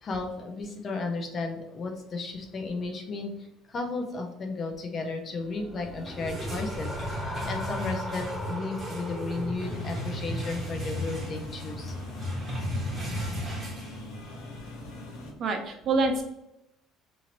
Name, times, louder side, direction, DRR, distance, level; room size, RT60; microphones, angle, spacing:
voice 1, 0.0-3.3 3.7-12.0, left 3 dB, 40° left, 3 dB, 0.6 m, -34 dB
sound 1, 5.4-10.5, equal, ahead, 0.5 m, -39 dB
sound 2, 5.8-14.5, equal, 20° right, 1.1 m, -35 dB
sound 3, 9.6-15.3, left 3 dB, 75° left, 0.8 m, -43 dB
voice 2, 15.4-16.2, right 3 dB, 45° right, 3 dB, 0.6 m, -26 dB
2.8 x 2.7 x 2.9 m, 0.85 s
supercardioid pair, 105°, 0 cm